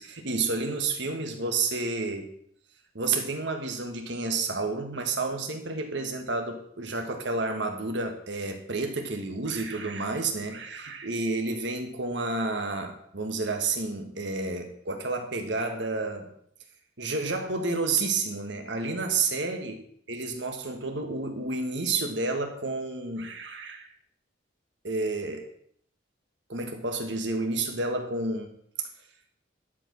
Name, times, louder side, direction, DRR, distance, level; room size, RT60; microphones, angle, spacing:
voice 1, 0.0-2.3 2.9-16.3 17.0-19.8 20.1-23.9 24.8-25.5 26.5-28.5, right 3 dB, 70° right, 5 dB, 1.5 m, -30 dB
11.0 x 4.9 x 6.1 m, 0.66 s
head